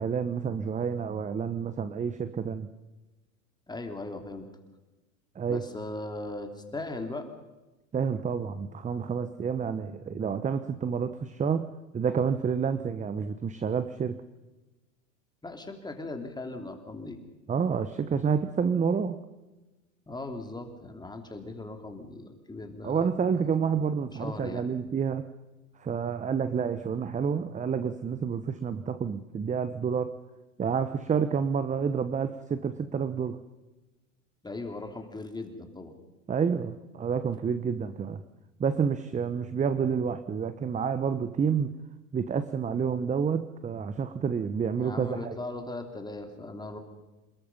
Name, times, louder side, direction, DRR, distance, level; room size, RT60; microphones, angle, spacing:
voice 1, 0.0-2.7 5.3-5.7 7.9-11.7 11.9-14.2 17.5-19.2 22.8-25.3 25.8-30.2 30.6-33.4 36.3-38.2 38.6-41.7 42.1-45.3, right 6 dB, 20° right, 12 dB, 1.1 m, -29 dB
voice 2, 3.7-4.5 5.5-7.3 15.4-17.2 20.1-23.1 24.2-24.6 34.4-35.9 44.7-46.8, left 2 dB, 10° left, 5 dB, 3.2 m, -38 dB
28.0 x 21.0 x 5.6 m, 1.1 s
figure-of-eight pair, 90°, 41 cm